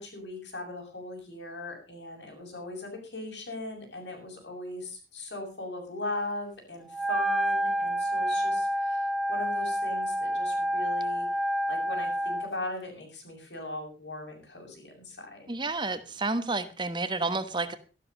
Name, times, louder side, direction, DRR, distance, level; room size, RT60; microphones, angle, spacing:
voice 1, 0.0-11.3 11.7-15.5, left 2 dB, 90° left, 2 dB, 7.2 m, -39 dB
Wind instrument woodwind instrument, 6.9-12.5, equal, ahead, 1.0 m, -28 dB
voice 2, 15.5-17.8, right 3 dB, 25° right, 11 dB, 1.2 m, -30 dB
13.0 x 12.5 x 5.3 m, 0.33 s
head